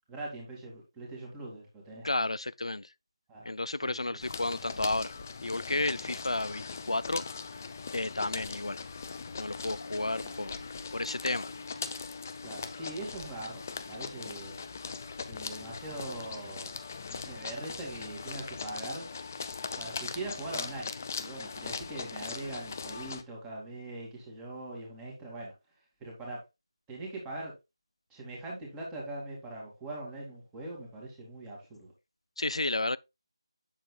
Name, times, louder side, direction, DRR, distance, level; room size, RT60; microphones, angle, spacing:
voice 1, 0.1-2.1 3.3-3.5 3.8-4.2 6.1-6.2 10.2-10.4 12.4-14.6 15.3-16.8 17.1-19.1 19.8-20.9 21.2-25.5 26.0-26.4 26.9-27.5 28.1-31.9, right 2 dB, 10° right, 2.5 m, -41 dB
voice 2, 2.0-2.9 3.4-5.1 5.4-7.2 7.5-7.6 7.9-8.8 9.4-10.7 10.9-11.5 32.4-33.0, left 2 dB, 90° left, 0.4 m, -32 dB
sound 1, 4.2-23.2, left 5 dB, 30° left, 0.7 m, -40 dB
8.3 x 7.5 x 2.4 m
figure-of-eight pair, 170°, 3 cm